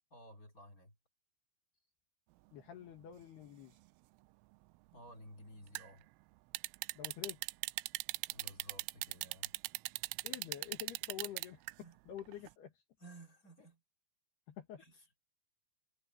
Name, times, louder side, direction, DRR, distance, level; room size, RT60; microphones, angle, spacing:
voice 1, 0.1-0.9 4.9-6.0 8.3-9.5 11.8-12.0 13.0-13.8 14.8-14.9, right 1 dB, 25° left, 2.3 m, -55 dB
voice 2, 2.5-3.8 6.9-7.4 10.2-11.6 12.1-12.7 14.5-14.8, left 10 dB, 60° left, 3.4 m, -48 dB
sound 1, 5.8-5.9 6.6-11.7 12.2-12.5, right 22 dB, 90° right, 3.2 m, -40 dB
omnidirectional pair, 5.7 m